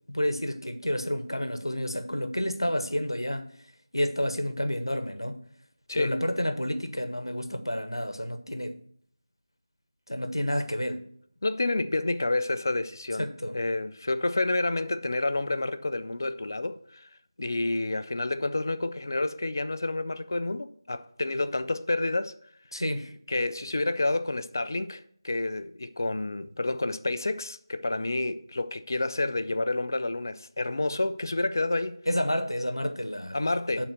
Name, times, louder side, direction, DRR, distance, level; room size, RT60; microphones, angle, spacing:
voice 1, 0.1-3.5 3.9-5.4 5.9-8.8 10.1-11.0 13.2-13.5 22.7-23.1 32.1-33.4 33.8-33.9, equal, 85° left, 1.0 m, -30 dB
voice 2, 11.4-13.3 13.5-17.1 17.4-22.4 23.3-32.0 33.3-33.9, left 2 dB, 50° left, 0.5 m, -29 dB
8.9 x 4.0 x 6.7 m
figure-of-eight pair, 165°, 2 cm